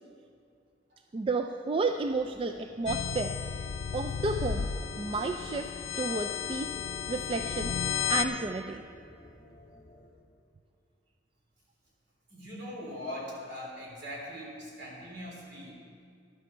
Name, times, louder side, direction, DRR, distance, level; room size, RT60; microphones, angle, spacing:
voice 1, 1.1-3.4 3.9-4.7 5.0-6.8 7.1-7.8 8.1-8.8, right 3 dB, 30° right, 6 dB, 0.3 m, -32 dB
sound 1, 1.8-10.1, left 1 dB, 20° left, 3.5 m, -51 dB
sound 2, 2.9-8.2, left 7 dB, 90° left, 0.5 m, -33 dB
voice 2, 12.3-15.7, left 1 dB, 60° right, -2 dB, 3.2 m, -41 dB
13.0 x 11.5 x 4.4 m, 2.4 s
head